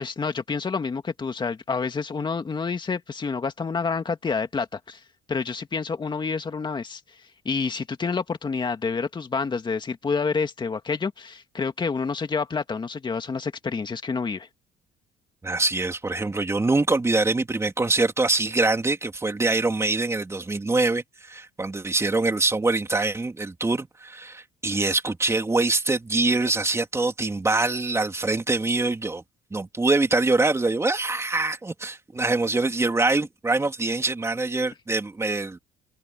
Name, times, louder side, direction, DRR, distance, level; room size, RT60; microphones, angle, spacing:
voice 1, 0.0-5.0 5.3-7.0 7.4-14.5, left 5 dB, 25° left, 2.3 m, -28 dB
voice 2, 15.4-29.2 29.5-35.6, right 3 dB, 15° right, 3.1 m, -24 dB
cardioid pair, 110°, 17 cm